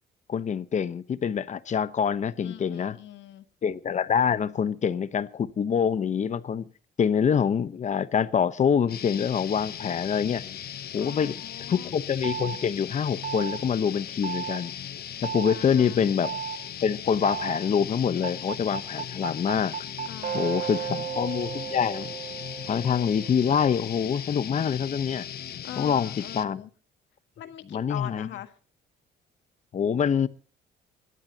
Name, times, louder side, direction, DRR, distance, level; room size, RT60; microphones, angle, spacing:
voice 1, 0.3-3.0 3.6-6.7 7.0-10.4 10.9-11.3 11.7-14.7 15.2-16.3 16.8-19.7 20.3-22.1 22.7-25.3 25.8-26.6 27.7-28.3 29.7-30.3, left 7 dB, 40° left, 1.0 m, -25 dB
voice 2, 2.4-3.5 11.0-11.9 15.5-16.0 20.1-21.0 25.6-26.7 27.4-28.5, left 12 dB, 80° left, 1.6 m, -42 dB
sound 1, 8.9-26.4, left 9 dB, 55° left, 1.2 m, -38 dB
sound 2, 12.2-12.6 13.2-13.6 14.2-14.6 15.2-15.6 16.2-16.6 17.2-17.6 18.2-23.3, right 9 dB, 45° right, 2.1 m, -34 dB
26.0 x 12.5 x 2.9 m
cardioid pair, 120°, 19 cm